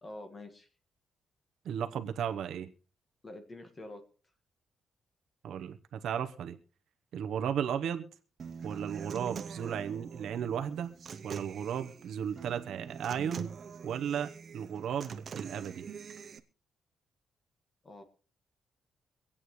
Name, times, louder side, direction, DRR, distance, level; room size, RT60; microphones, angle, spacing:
voice 1, 0.0-0.7 3.2-4.0 17.8-18.0, left 2 dB, 25° left, 7 dB, 1.6 m, -46 dB
voice 2, 1.6-2.7 5.4-6.6 7.1-8.1 8.6-10.9 11.2-13.5 13.8-15.9, right 8 dB, 80° right, 8 dB, 0.9 m, -35 dB
Human voice / Acoustic guitar, 8.4-16.4, right 6 dB, 45° right, 0.8 m, -44 dB
24.5 x 8.7 x 3.2 m, 0.40 s
cardioid pair, 155°, 0 cm